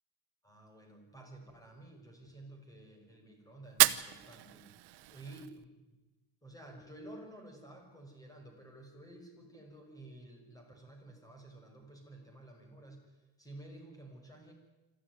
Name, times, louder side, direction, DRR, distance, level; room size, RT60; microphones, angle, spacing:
voice 1, 0.4-5.7 6.4-14.5, right 1 dB, 10° left, 3 dB, 5.8 m, -52 dB
Fire, 3.6-5.7, right 17 dB, 70° right, 1.0 m, -31 dB
26.5 x 13.5 x 9.5 m, 1.1 s
cardioid pair, 135°, 40 cm